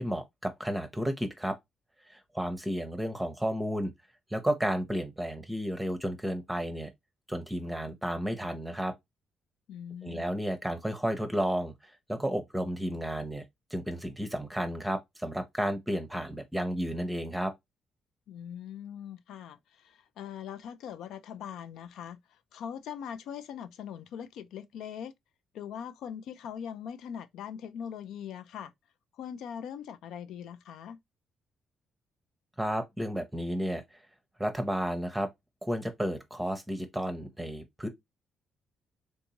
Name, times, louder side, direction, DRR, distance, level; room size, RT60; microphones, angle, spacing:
voice 1, 0.0-1.6 2.1-3.9 4.3-6.9 7.3-8.9 10.0-13.4 13.7-17.5 32.6-33.8 34.4-35.3 35.6-37.9, equal, 5° right, 0.7 m, -32 dB
voice 2, 9.7-10.4 18.3-25.1 25.5-28.7 29.1-31.0, left 8 dB, 80° left, 0.4 m, -41 dB
3.5 x 2.6 x 2.8 m
cardioid pair, 90°, 0 cm